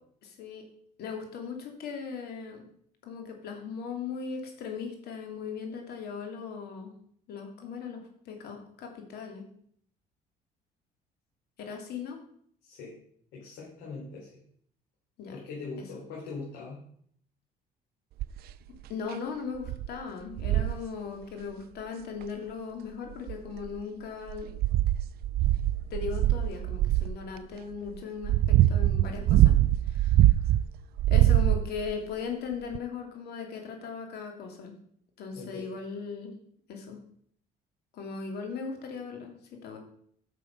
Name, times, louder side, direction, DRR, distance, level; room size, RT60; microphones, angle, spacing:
voice 1, 0.2-0.7 1.0-2.6 3.0-6.9 7.3-9.5 11.6-12.2 15.2-15.4 18.9-24.5 25.9-29.5 29.9-30.2 31.1-34.7 35.2-36.4 36.7-37.0 37.9-39.8, left 5 dB, 70° left, 3 dB, 2.7 m, -38 dB
voice 2, 12.6-12.9 13.3-14.3 15.3-16.8 35.3-35.7, left 4 dB, 85° left, -5 dB, 3.8 m, -41 dB
sound 1, 18.2-18.5 19.1-19.2 19.7-19.9 20.4-20.8 22.2-22.3 23.1-23.8 24.3-27.2 27.9-30.6 31.0-31.9 32.7-32.8, right 14 dB, 65° right, 0.4 m, -23 dB
8.8 x 6.5 x 5.4 m, 0.63 s
cardioid pair, 110°, 17 cm